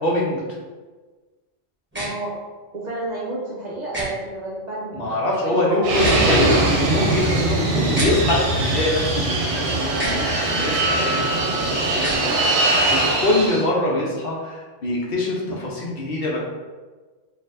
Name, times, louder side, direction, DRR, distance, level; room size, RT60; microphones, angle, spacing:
voice 1, 0.0-0.4 4.9-16.4, left 2 dB, 55° left, -4 dB, 0.9 m, -24 dB
sound 1, 1.9-2.1 3.9-4.1 5.9-6.3 7.9-8.1 9.9-10.2 11.9-12.2, equal, 10° right, 0.9 m, -28 dB
voice 2, 1.9-2.4 2.7-6.2 13.9-14.0, right 2 dB, 45° right, -6 dB, 0.6 m, -31 dB
Fixed-wing aircraft airplane, 5.8-13.7, right 2 dB, 75° right, 0.9 m, -21 dB
4.3 x 2.6 x 2.5 m, 1.3 s
omnidirectional pair, 1.2 m